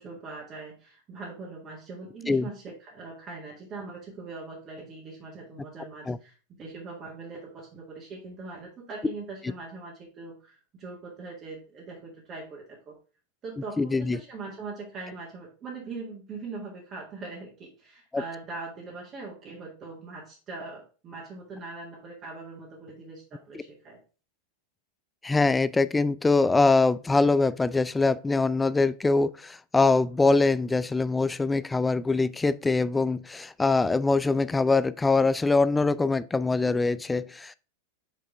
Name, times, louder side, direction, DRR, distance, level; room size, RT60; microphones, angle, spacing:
voice 1, 0.0-13.0 13.4-24.0, right 3 dB, 25° right, 1.6 m, -41 dB
voice 2, 13.8-14.2 18.1-18.2 25.2-37.6, left 3 dB, 10° left, 0.3 m, -23 dB
5.8 x 4.9 x 3.5 m
figure-of-eight pair, 90°, 0 cm